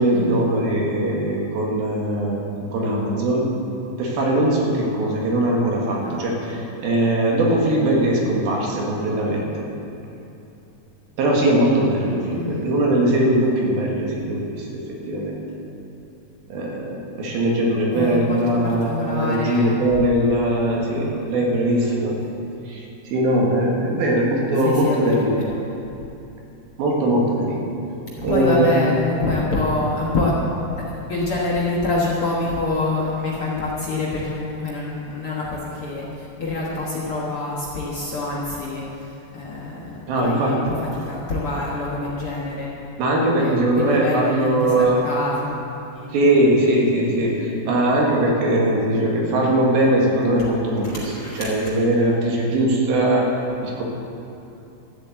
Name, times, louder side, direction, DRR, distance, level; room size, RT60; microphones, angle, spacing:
voice 1, 0.0-2.4 2.7-3.5 4.0-9.7 11.2-14.7 15.1-15.4 16.5-22.1 22.7-22.8 23.1-25.4 26.8-27.7 28.2-28.8 40.1-40.6 43.0-45.0 46.1-53.3 53.6-53.8, right 1 dB, 90° right, -2 dB, 3.7 m, -20 dB
voice 2, 12.3-12.7 17.9-19.8 21.0-21.2 21.8-22.0 24.6-25.4 28.2-30.3 30.9-42.8 43.4-45.6 45.9-46.2 51.1-51.4, left 2 dB, 55° left, -5 dB, 1.6 m, -26 dB
13.5 x 7.6 x 8.1 m, 2.8 s
omnidirectional pair, 4.2 m